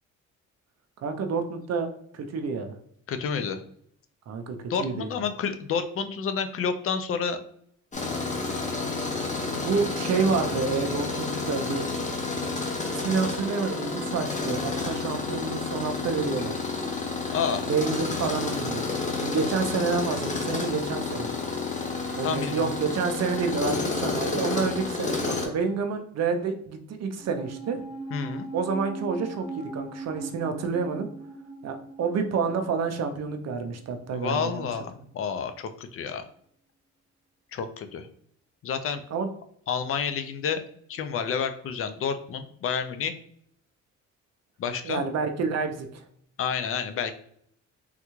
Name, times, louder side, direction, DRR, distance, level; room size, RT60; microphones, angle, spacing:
voice 1, 1.0-1.9 2.1-2.7 4.3-5.2 9.5-11.9 12.9-16.6 17.7-18.8 19.2-21.3 22.1-27.8 28.5-31.1 31.6-34.7 39.1-39.3 44.8-46.0, right 5 dB, 60° right, 6 dB, 0.6 m, -29 dB
voice 2, 3.1-3.6 4.7-7.4 17.3-17.6 22.2-22.6 28.1-28.5 34.1-36.2 37.5-38.1 38.6-39.0 39.7-40.6 40.9-43.1 44.6-45.0 46.4-47.1, left 6 dB, 50° left, 9 dB, 0.4 m, -29 dB
Tools, 7.9-25.5, left 3 dB, 25° left, 0.8 m, -30 dB
sound 1, 27.2-33.8 34.0-34.1, right 3 dB, 20° right, 0.7 m, -40 dB
3.5 x 2.2 x 3.0 m, 0.66 s
cardioid pair, 90°, 30 cm